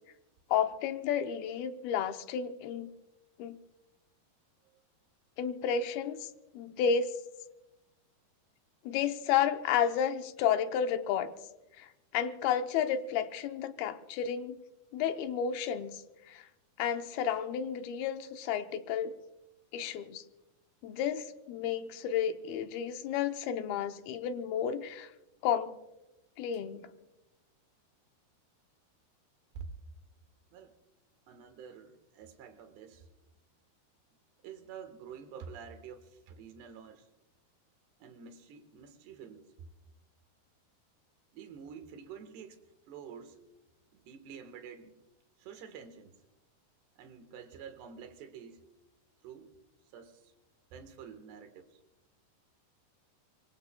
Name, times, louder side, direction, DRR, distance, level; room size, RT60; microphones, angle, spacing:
voice 1, 0.5-2.9 3.4-3.6 5.4-6.3 6.5-7.1 8.9-11.3 11.8-14.6 14.9-16.0 16.3-16.5 16.8-19.1 19.7-20.2 20.8-25.1 25.4-25.7 26.4-26.9, left 8 dB, 75° left, 8 dB, 2.5 m, -31 dB
voice 2, 31.3-33.1 34.4-37.1 38.0-39.4 41.3-42.6 42.9-43.4 43.9-45.0 45.4-46.1 47.0-48.7 49.2-49.5 49.9-50.3 50.7-51.8, right 7 dB, 80° right, 8 dB, 3.5 m, -48 dB
25.5 x 23.5 x 2.3 m, 0.97 s
omnidirectional pair, 4.7 m